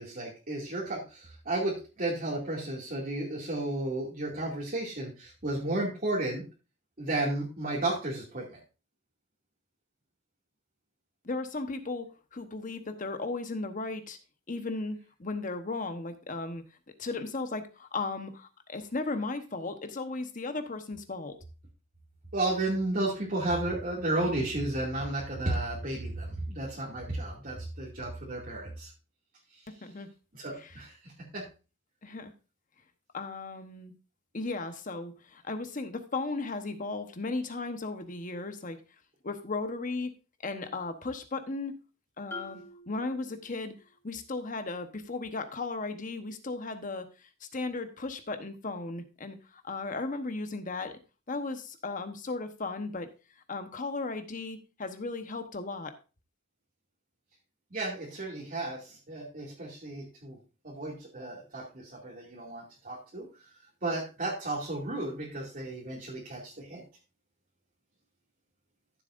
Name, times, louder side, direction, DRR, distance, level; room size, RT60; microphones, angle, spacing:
voice 1, 0.0-6.4 7.0-8.6 22.3-28.9 30.3-31.4 57.7-60.4 60.6-63.3 63.8-66.8, right 2 dB, 45° right, -5 dB, 2.4 m, -33 dB
voice 2, 11.2-14.2 14.5-16.6 17.0-21.4 29.7-30.1 30.6-30.8 32.0-32.3 33.1-33.9 34.3-38.8 39.2-40.1 40.4-41.7 42.2-43.8 44.0-51.0 51.3-53.1 53.5-56.0, left 3 dB, 40° left, 8 dB, 1.1 m, -36 dB
Marimba xylophone, 42.3-44.1, left 3 dB, 10° left, 1.8 m, -46 dB
13.5 x 7.6 x 2.6 m, 0.32 s
head